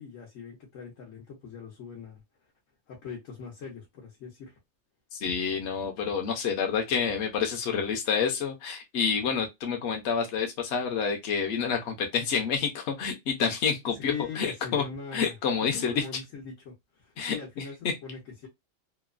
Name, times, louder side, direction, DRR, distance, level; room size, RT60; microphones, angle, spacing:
voice 1, 0.0-2.2 2.9-4.6 14.0-18.5, left 6 dB, 85° left, 1.3 m, -41 dB
voice 2, 5.1-14.8 15.1-16.0 17.2-17.6, left 6 dB, 65° left, 0.9 m, -28 dB
3.0 x 2.0 x 2.3 m
omnidirectional pair, 1.3 m